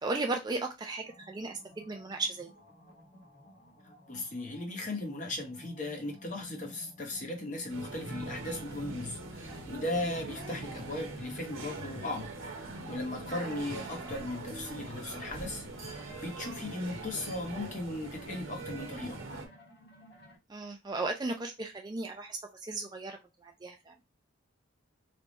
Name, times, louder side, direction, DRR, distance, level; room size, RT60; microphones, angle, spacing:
voice 1, 0.0-2.5 13.3-13.4 20.5-23.9, right 3 dB, 20° right, 0.4 m, -36 dB
sound 1, 1.0-20.4, equal, 55° left, 1.4 m, -55 dB
voice 2, 4.1-12.3 12.6-15.6 16.2-19.2, left 2 dB, 35° left, 1.0 m, -37 dB
sound 2, 7.7-19.5, right 2 dB, 75° right, 0.9 m, -42 dB
3.3 x 2.3 x 3.9 m
head